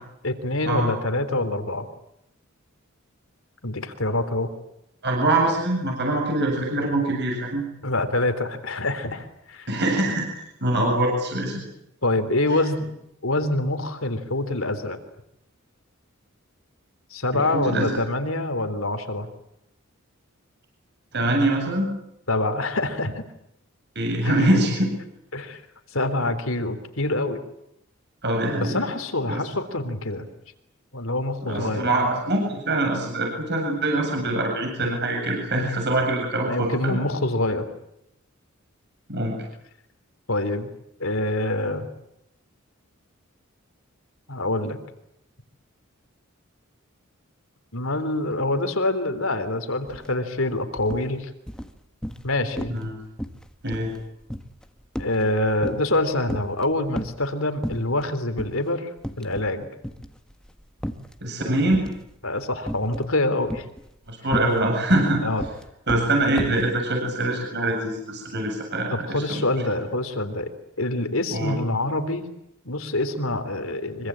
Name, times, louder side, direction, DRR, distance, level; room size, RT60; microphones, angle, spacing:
voice 1, 0.2-1.9 3.6-4.5 7.8-9.7 12.0-12.9 13.2-15.0 17.1-19.3 22.3-23.2 24.2-24.6 25.3-25.6 25.9-27.4 28.6-30.3 30.9-32.0 36.5-37.6 40.3-40.7 41.0-41.9 44.3-44.8 47.7-51.3 52.2-52.7 55.0-58.9 59.2-59.7 61.5-61.7 62.2-63.7 65.2-65.4 68.9-70.5 70.8-72.3 72.7-74.1, left 2 dB, 75° left, 9 dB, 3.6 m, -25 dB
voice 2, 5.0-7.7 9.7-10.3 10.6-11.6 12.5-12.6 17.3-18.0 21.1-21.9 23.9-24.9 28.2-28.8 29.3-29.4 31.4-37.0 39.1-39.4 52.7-53.0 53.6-53.9 61.2-61.8 64.1-65.2 65.9-69.4 71.3-71.6, right 1 dB, 55° right, 1 dB, 7.9 m, -24 dB
sound 1, 49.9-50.1 50.4-51.1 51.5-52.3 52.6-52.9 53.2-56.0 56.3-57.3 57.6-58.1 58.4-58.6 59.0-59.6 59.8-61.2 61.7-62.1 62.7-63.1 63.5-66.7, equal, 5° left, 1.7 m, -33 dB
25.5 x 24.5 x 8.8 m, 0.80 s
head